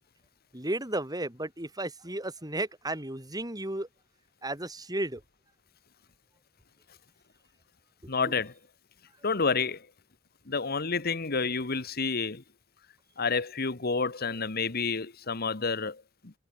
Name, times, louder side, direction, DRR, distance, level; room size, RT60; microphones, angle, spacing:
voice 1, 0.5-3.9 4.4-5.2, right 1 dB, 20° right, 6.4 m, -33 dB
voice 2, 8.1-8.5 9.2-9.9 10.5-12.4 13.2-16.3, left 4 dB, 50° left, 1.4 m, -29 dB
head